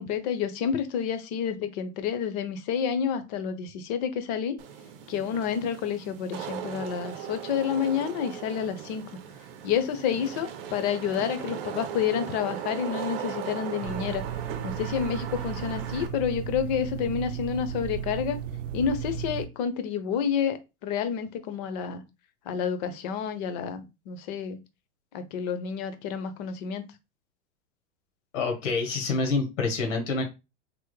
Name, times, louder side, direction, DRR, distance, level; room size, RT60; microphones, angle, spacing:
voice 1, 0.0-4.6 5.1-9.0 9.6-14.2 14.6-18.4 18.7-22.0 22.5-24.6 25.1-26.9, left 7 dB, 35° left, 0.5 m, -29 dB
Wind / Rain, 4.6-16.1, right 8 dB, 50° right, 0.7 m, -38 dB
sound 1, 13.8-19.5, right 9 dB, 90° right, 0.6 m, -35 dB
voice 2, 28.3-30.2, left 4 dB, 85° left, 1.2 m, -27 dB
3.4 x 2.0 x 3.1 m
supercardioid pair, 140°, 36 cm